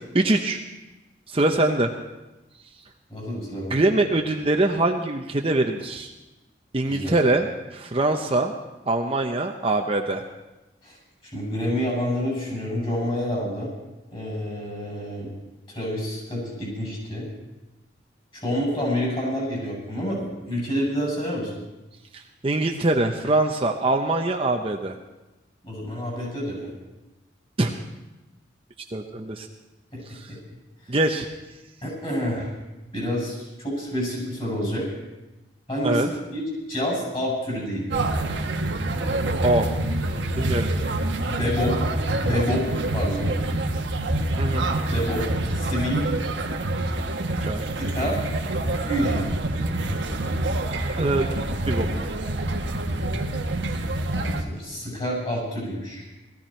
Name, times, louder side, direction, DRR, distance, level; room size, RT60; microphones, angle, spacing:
voice 1, 0.1-0.6 1.3-1.9 3.7-6.1 6.7-7.5 7.7-8.5 8.9-10.2 22.1-24.9 27.6-27.7 28.9-29.5 30.1-30.3 30.9-31.3 35.8-36.1 39.4-39.7 40.3-40.7 44.4-44.7 47.4-47.7 51.0-51.9, right 2 dB, 30° right, 3 dB, 0.8 m, -23 dB
voice 2, 3.1-3.8 6.9-7.2 10.8-11.0 11.3-13.7 14.1-15.3 15.7-17.3 18.3-21.5 25.6-26.7 29.9-30.0 30.3-30.4 31.8-32.5 32.9-34.9 35.7-38.1 41.2-41.8 42.2-43.3 44.9-45.2 45.5-46.0 47.8-48.2 48.8-49.3 54.1-56.1, equal, 30° left, -4 dB, 7.7 m, -28 dB
sound 1, 37.9-54.4, right 2 dB, 75° right, 1.3 m, -26 dB
18.5 x 14.5 x 4.5 m, 1.0 s
head